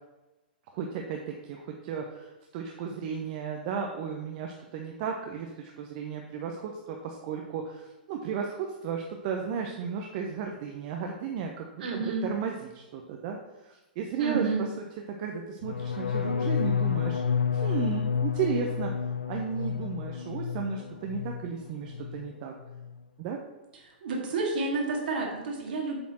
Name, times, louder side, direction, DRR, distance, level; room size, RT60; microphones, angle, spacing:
voice 1, 0.7-13.4 13.6-14.4 15.1-17.2 17.5-18.9 19.3-22.5 23.2-23.4, right 6 dB, 50° right, 2 dB, 0.8 m, -34 dB
voice 2, 11.8-12.3 14.2-14.7 23.8-26.0, right 3 dB, 65° right, -1 dB, 2.2 m, -30 dB
sound 1, 15.6-21.5 21.8-22.3 22.6-23.0, left 7 dB, 85° left, 0.4 m, -30 dB
7.7 x 4.2 x 4.3 m, 1.1 s
hypercardioid pair, 115°, 5 cm